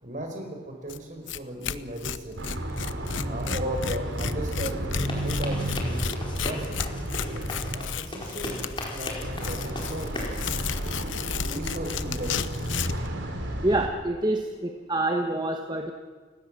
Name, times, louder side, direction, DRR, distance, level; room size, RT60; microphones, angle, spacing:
voice 1, 0.0-2.4 3.2-6.1 6.4-7.1 7.7-9.1 9.4-10.4 11.5-12.6, right 1 dB, 40° right, 3 dB, 4.9 m, -36 dB
Tearing, 0.9-1.0 1.3-1.4 1.6-13.1, left 7 dB, 90° left, 0.9 m, -33 dB
sound 1, 2.4-7.8 9.2-13.9, right 1 dB, 75° right, 3.6 m, -32 dB
sound 2, 5.0-10.4, left 1 dB, 25° left, 4.6 m, -37 dB
voice 2, 13.6-15.9, right 1 dB, 20° right, 4 dB, 1.3 m, -26 dB
30.0 x 17.0 x 7.6 m, 1.5 s
head